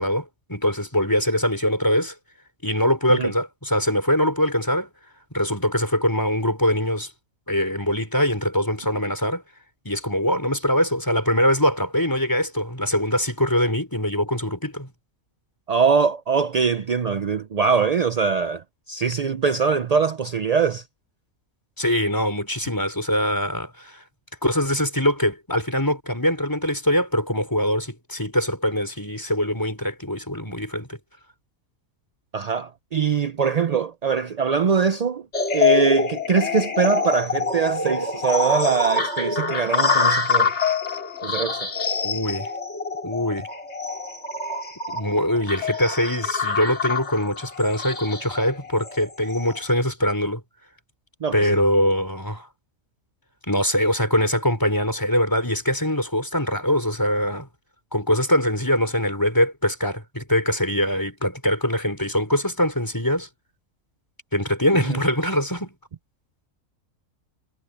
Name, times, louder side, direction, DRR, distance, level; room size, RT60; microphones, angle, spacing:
voice 1, 0.0-2.1 2.6-4.9 5.3-7.1 7.5-9.4 9.8-14.9 21.8-24.0 24.4-31.0 42.0-42.5 43.0-43.5 44.9-50.4 51.3-52.5 53.5-57.5 57.9-63.3 64.3-65.7, equal, 15° left, 4.7 m, -23 dB
voice 2, 15.7-20.8 32.3-35.2 35.5-40.5 41.2-41.7 51.2-51.6 64.9-65.0, right 5 dB, 50° right, 0.4 m, -22 dB
sound 1, 35.3-49.6, left 4 dB, 50° left, 3.7 m, -25 dB
omnidirectional pair, 1.5 m